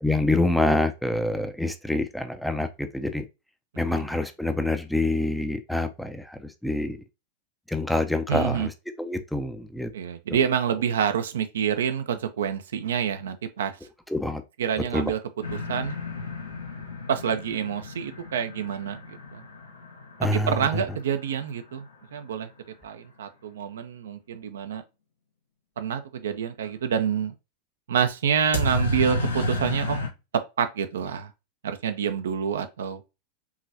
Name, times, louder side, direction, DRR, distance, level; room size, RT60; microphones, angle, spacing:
voice 1, 0.0-3.2 3.8-7.0 7.7-9.9 10.3-10.4 14.1-14.4 14.9-15.1 20.2-20.8, left 2 dB, ahead, 0.5 m, -26 dB
voice 2, 8.3-8.7 9.9-13.8 14.6-15.2 15.7-16.0 17.1-19.4 20.3-21.9 22.1-22.5 22.8-24.8 25.8-27.3 27.9-30.0 30.3-31.3 31.6-33.0, right 8 dB, 65° right, 0.5 m, -27 dB
sound 1, 15.4-21.2 28.5-30.1, left 1 dB, 75° left, 0.9 m, -31 dB
4.8 x 3.1 x 2.6 m
figure-of-eight pair, 90°, 0 cm